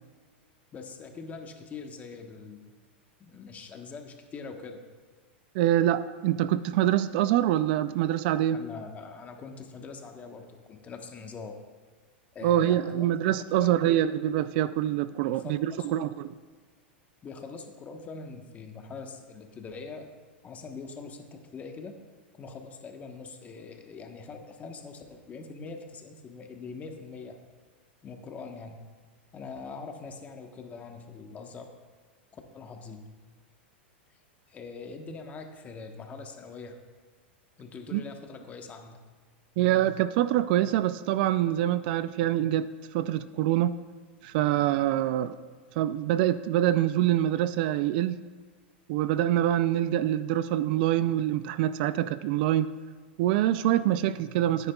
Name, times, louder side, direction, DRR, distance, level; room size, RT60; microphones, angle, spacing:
voice 1, 0.7-2.7 3.2-4.8 8.5-11.6 12.3-13.1 13.5-14.1 15.2-16.1 17.2-20.1 20.4-21.9 22.4-27.4 28.0-28.8 29.3-31.7 32.3-33.0 34.5-36.8 37.6-39.0, left 4 dB, 25° left, 4 dB, 1.2 m, -43 dB
voice 2, 5.5-8.6 12.4-16.3 37.9-38.0 39.6-42.7 42.9-43.7 44.2-45.4 45.8-48.2 48.9-52.7 53.2-54.7, right 12 dB, 60° right, 15 dB, 0.4 m, -25 dB
14.0 x 9.8 x 2.3 m, 1.5 s
hypercardioid pair, 125°, 6 cm